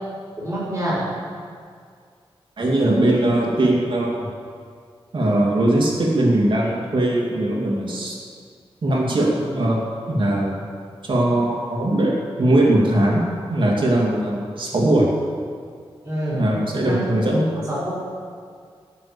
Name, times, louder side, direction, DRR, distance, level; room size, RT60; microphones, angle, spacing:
voice 1, 0.4-1.1 16.0-17.0 17.3-17.4 17.7-17.9, equal, 20° right, -11 dB, 4.3 m, -27 dB
voice 2, 2.6-4.3 5.1-8.2 8.8-10.6 11.0-15.1 16.3-17.5, right 1 dB, 55° right, -3 dB, 2.8 m, -20 dB
18.5 x 6.8 x 7.0 m, 2.1 s
wide cardioid pair, 150°, 10 cm